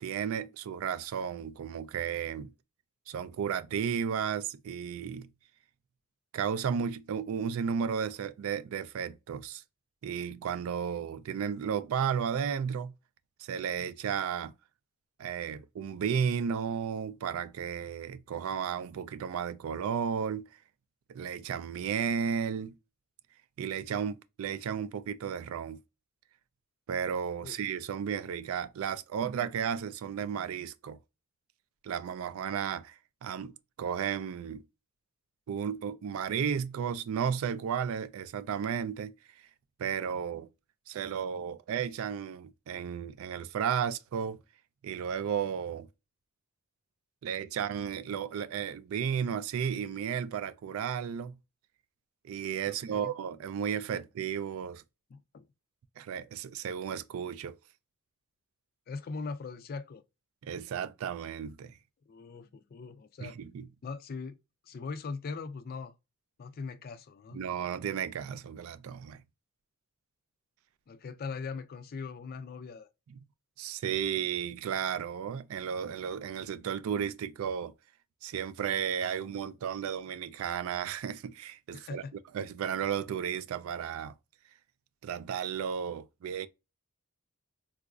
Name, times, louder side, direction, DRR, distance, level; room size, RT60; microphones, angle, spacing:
voice 1, 0.0-2.5 3.1-5.3 6.3-9.6 10.0-12.9 13.4-14.5 15.2-20.5 21.1-22.8 23.6-25.8 26.9-31.0 31.8-33.5 33.8-34.6 35.5-39.1 39.8-40.5 40.9-44.4 44.8-45.9 47.2-51.4 52.2-54.8 56.0-57.6 60.4-61.8 63.2-63.7 67.3-69.2 73.6-77.7 78.2-82.0 82.3-84.1 85.0-86.5, right 7 dB, 65° right, 0.3 m, -33 dB
voice 2, 52.6-53.1 55.1-55.4 58.9-60.0 62.1-63.3 63.8-64.4 64.6-65.9 66.4-67.4 70.9-72.9 81.7-82.1, left 4 dB, 45° left, 0.3 m, -40 dB
3.8 x 2.4 x 2.3 m
head